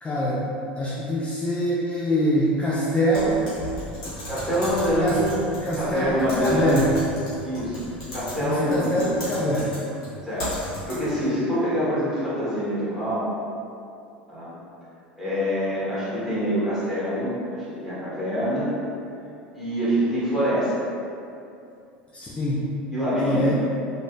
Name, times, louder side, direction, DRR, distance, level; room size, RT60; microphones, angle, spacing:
voice 1, 0.0-3.5 5.0-5.2 5.6-6.9 8.4-9.8 22.1-22.7 23.2-23.5, equal, 20° left, -7 dB, 0.4 m, -24 dB
Typing, 3.1-11.3, equal, 70° left, 1.3 m, -36 dB
voice 2, 4.3-5.3 5.8-6.9 7.4-7.8 8.1-8.9 10.3-13.3 14.3-14.5 15.2-18.7 19.5-20.7 22.9-23.5, equal, 10° right, -11 dB, 1.4 m, -25 dB
3.4 x 2.5 x 2.3 m, 2.6 s
hypercardioid pair, 80°, 5 cm